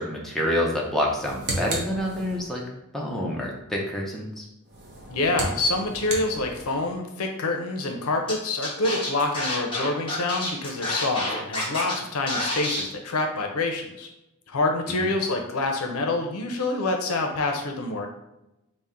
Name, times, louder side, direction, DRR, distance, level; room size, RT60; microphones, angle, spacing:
voice 1, 0.0-2.6 2.9-4.5 14.9-15.1, left 1 dB, ahead, -3 dB, 0.5 m, -27 dB
sound 1, 1.0-2.7 4.6-7.0, right 2 dB, 50° right, 0.8 m, -34 dB
voice 2, 5.1-14.1 14.5-18.1, left 2 dB, 70° left, 3 dB, 0.6 m, -27 dB
Scratching (performance technique), 8.3-8.4 8.6-11.9 12.3-12.8, left 2 dB, 25° left, 1.0 m, -28 dB
4.2 x 2.1 x 3.6 m, 0.93 s
head